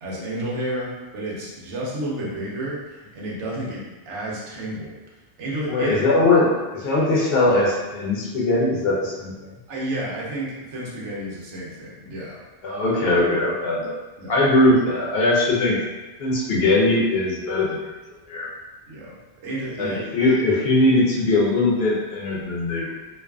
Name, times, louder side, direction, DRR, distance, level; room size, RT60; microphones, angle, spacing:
voice 1, 0.0-5.0 5.4-5.9 9.7-12.4 14.2-14.4 18.9-19.1 19.4-20.0, right 1 dB, 85° right, -4 dB, 1.0 m, -31 dB
voice 2, 5.7-9.5 12.6-13.9 14.3-15.8 16.2-17.8 18.3-18.5 19.8-22.9, left 2 dB, 65° left, -4 dB, 0.8 m, -20 dB
2.5 x 2.4 x 2.2 m, 1.2 s
omnidirectional pair, 1.2 m